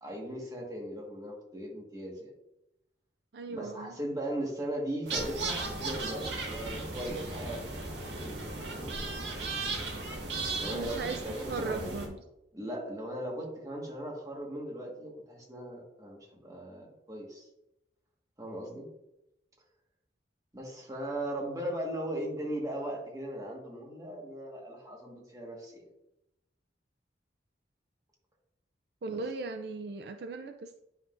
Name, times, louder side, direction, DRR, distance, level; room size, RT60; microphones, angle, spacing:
voice 1, 0.0-2.3 3.5-7.7 8.2-8.4 8.7-9.0 10.5-12.1 12.5-17.5 18.4-18.9 20.5-25.9 29.1-29.2, right 1 dB, 20° right, -2 dB, 1.6 m, -38 dB
voice 2, 3.3-3.9 10.7-11.2 11.5-12.2 29.0-30.8, right 4 dB, 60° right, 6 dB, 0.4 m, -37 dB
sound 1, 5.1-12.1, right 3 dB, 80° right, 1.8 m, -36 dB
9.5 x 5.8 x 2.6 m, 0.89 s
head